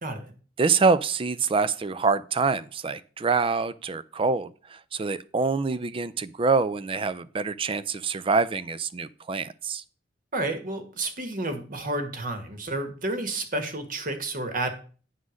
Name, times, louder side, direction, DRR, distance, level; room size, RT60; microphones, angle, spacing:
voice 1, 0.0-0.3 10.3-14.7, right 2 dB, 45° right, 7 dB, 1.4 m, -31 dB
voice 2, 0.6-9.8, right 4 dB, 30° right, 16 dB, 0.4 m, -25 dB
9.5 x 3.9 x 6.3 m, 0.40 s
head